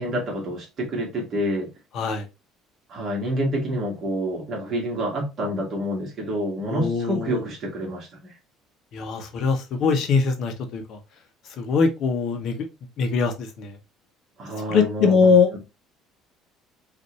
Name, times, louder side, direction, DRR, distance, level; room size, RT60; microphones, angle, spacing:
voice 1, 0.0-1.7 2.9-8.3 14.4-15.6, equal, 35° right, 1.7 m, -28 dB
voice 2, 6.7-7.3 8.9-10.8 11.6-12.5 13.0-13.3 13.6-13.7 14.7-15.5, left 5 dB, 50° left, 0.8 m, -21 dB
5.3 x 2.6 x 3.1 m
cardioid pair, 165°, 0 cm